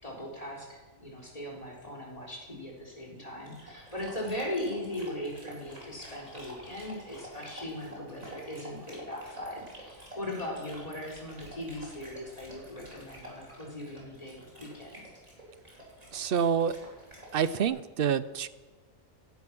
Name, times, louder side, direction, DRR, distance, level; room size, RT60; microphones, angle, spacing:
voice 1, 0.0-15.0, left 1 dB, 25° left, -2 dB, 3.9 m, -39 dB
Dog, 3.4-17.7, right 1 dB, 30° right, 4.3 m, -49 dB
voice 2, 16.1-16.8 17.3-18.5, right 7 dB, 55° right, 15 dB, 0.7 m, -27 dB
16.5 x 12.0 x 6.1 m, 1.2 s
omnidirectional pair, 1.4 m